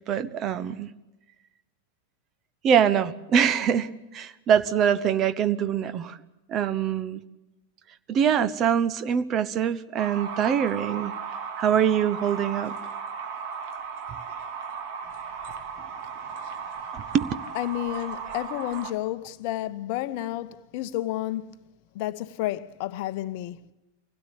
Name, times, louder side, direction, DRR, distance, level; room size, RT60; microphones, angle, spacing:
voice 1, 0.1-0.9 2.6-6.2 6.5-7.2 8.1-11.1 11.6-12.8 16.9-17.3, right 8 dB, 30° right, 1.1 m, -24 dB
sound 1, 10.0-18.9, right 6 dB, 45° right, 2.6 m, -36 dB
voice 2, 17.5-21.7 21.9-23.7, left 14 dB, 45° left, 0.8 m, -31 dB
25.0 x 17.0 x 8.6 m
figure-of-eight pair, 90°, 0 cm